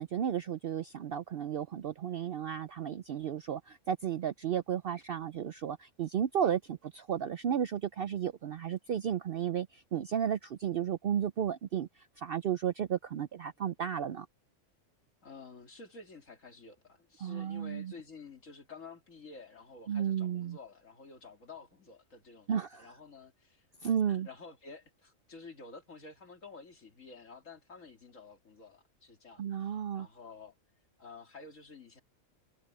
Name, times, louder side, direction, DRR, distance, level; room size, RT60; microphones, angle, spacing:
voice 1, 0.0-14.3 17.2-17.9 19.9-20.6 22.5-22.9 23.8-24.3 29.4-30.1, right 9 dB, 65° right, 0.6 m, -33 dB
voice 2, 15.2-30.6 31.0-32.0, left 4 dB, 65° left, 3.1 m, -51 dB
omnidirectional pair, 1.4 m